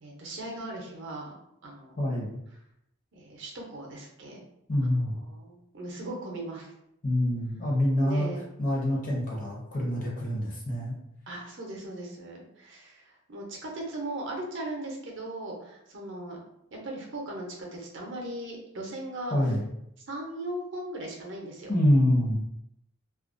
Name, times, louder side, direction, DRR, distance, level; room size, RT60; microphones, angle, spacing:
voice 1, 0.0-1.3 1.6-1.9 3.1-4.4 4.9-6.7 8.0-8.5 11.3-16.4 16.7-17.5 17.7-19.3 20.1-21.7, right 1 dB, 55° right, -1 dB, 0.6 m, -38 dB
voice 2, 2.0-2.4 4.7-5.1 7.0-8.3 8.6-10.9 19.3-19.6 21.7-22.4, left 1 dB, 35° left, -3 dB, 0.7 m, -26 dB
2.3 x 2.1 x 2.5 m, 0.78 s
head